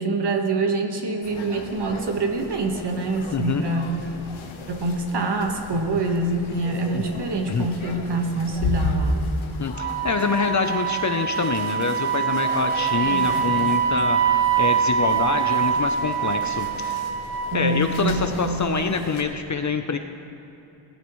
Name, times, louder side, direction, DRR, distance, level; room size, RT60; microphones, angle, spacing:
voice 1, 0.0-4.0 4.7-9.2 13.1-13.3 17.5-18.6, right 3 dB, 60° right, 3 dB, 1.5 m, -25 dB
sound 1, 1.2-19.2, left 2 dB, 85° left, 1.3 m, -35 dB
voice 2, 3.3-3.6 6.9-7.0 7.5-7.7 9.6-17.0 17.5-20.0, left 5 dB, 40° left, 6 dB, 0.7 m, -26 dB
Wind instrument woodwind instrument, 9.7-18.0, right 8 dB, 30° right, 1.7 m, -24 dB
17.5 x 13.5 x 3.2 m, 2.9 s
wide cardioid pair, 90°, 47 cm